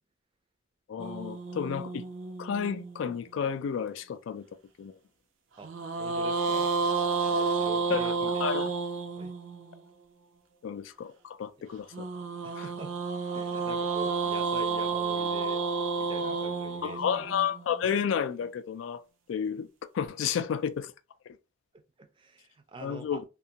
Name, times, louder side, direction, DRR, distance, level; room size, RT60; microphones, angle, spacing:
voice 1, 0.9-2.0 2.4-4.4 4.8-4.9 7.9-8.7 10.6-11.9 12.6-12.7 16.8-19.0 19.3-19.7 19.9-20.9 22.8-23.2, left 7 dB, 75° left, 0.3 m, -31 dB
sound 1, 1.0-3.4 5.6-9.8 11.9-18.1, right 4 dB, 85° right, 0.5 m, -31 dB
voice 2, 6.0-6.7 7.3-8.7 9.1-9.3 12.4-13.0 13.3-15.6 16.0-17.3 22.0-23.2, right 3 dB, 25° right, 0.4 m, -45 dB
2.4 x 2.3 x 2.7 m
head